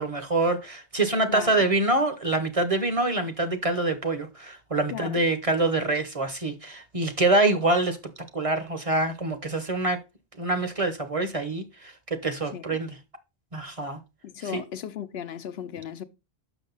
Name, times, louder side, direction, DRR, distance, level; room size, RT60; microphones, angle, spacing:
voice 1, 0.0-8.0 8.3-10.0 10.4-13.0 13.5-14.0 14.5-14.6, right 2 dB, 35° right, 0.9 m, -25 dB
voice 2, 4.9-5.2 12.5-12.8 14.2-16.0, left 8 dB, 70° left, 0.9 m, -36 dB
6.2 x 6.1 x 3.9 m
omnidirectional pair, 1.1 m